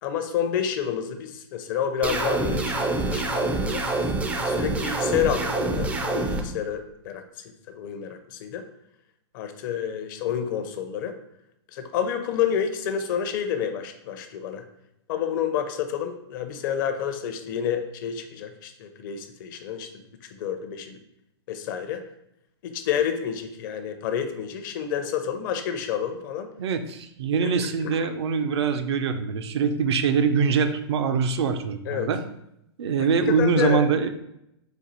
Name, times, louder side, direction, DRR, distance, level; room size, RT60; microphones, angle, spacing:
voice 1, 0.0-3.8 4.4-7.2 7.7-8.6 9.3-11.1 11.7-14.6 15.1-20.1 20.4-21.0 21.5-22.0 22.6-26.5 27.4-27.5 27.8-27.9 31.9-32.1 33.4-33.9, left 8 dB, 50° left, 7 dB, 0.6 m, -29 dB
sound 1, 2.0-6.4, right 2 dB, 10° right, 0.3 m, -26 dB
voice 2, 26.6-32.2 32.8-34.1, right 5 dB, 70° right, 8 dB, 0.5 m, -23 dB
4.3 x 2.4 x 3.9 m, 0.80 s
hypercardioid pair, 135°, 14 cm